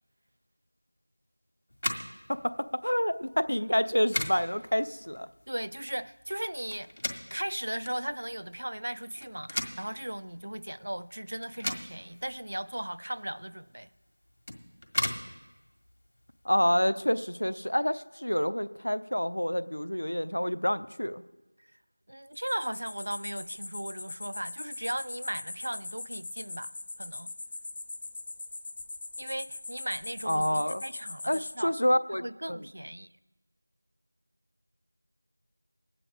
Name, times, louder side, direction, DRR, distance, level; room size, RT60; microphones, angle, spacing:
sound 1, 1.7-16.7, left 1 dB, 60° left, 1.5 m, -39 dB
voice 1, 2.3-5.3 16.4-21.2 30.3-30.8 31.3-32.6, equal, 85° left, 0.6 m, -28 dB
voice 2, 5.5-6.9 7.3-13.9 22.1-26.7 27.0-27.3 29.2-31.7 32.2-33.1, right 1 dB, 65° right, 0.5 m, -37 dB
sound 2, 22.3-31.5, left 3 dB, 20° left, 0.4 m, -41 dB
20.5 x 8.4 x 3.6 m
figure-of-eight pair, 175°, 0 cm